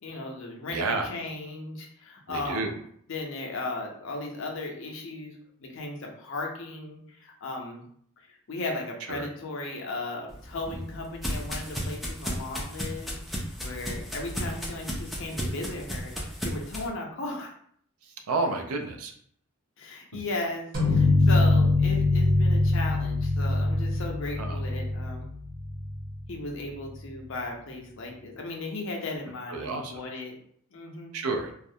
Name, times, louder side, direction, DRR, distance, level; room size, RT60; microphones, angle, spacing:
voice 1, 0.0-2.8 3.1-5.3 5.6-7.8 8.5-17.5 19.8-25.3 26.3-30.3 30.7-31.1, left 2 dB, 60° left, 1 dB, 0.5 m, -36 dB
voice 2, 0.7-1.1 2.3-2.7 9.1-9.3 18.3-19.1 20.1-20.2 24.4-24.6 29.5-29.9 31.1-31.5, right 3 dB, 90° right, 4 dB, 0.4 m, -30 dB
sound 1, 10.3-16.9, equal, ahead, 0.3 m, -34 dB
sound 2, 20.7-26.3, left 2 dB, 40° right, 0.9 m, -23 dB
2.4 x 2.0 x 2.6 m, 0.63 s
head